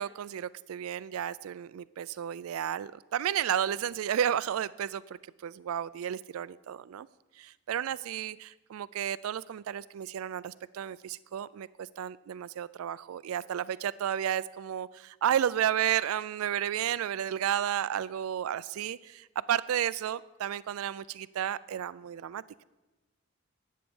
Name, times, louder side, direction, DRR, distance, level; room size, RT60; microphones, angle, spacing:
voice 1, 0.0-7.1 7.3-22.6, right 10 dB, 85° right, 18 dB, 0.3 m, -32 dB
11.0 x 8.5 x 7.0 m, 1.1 s
head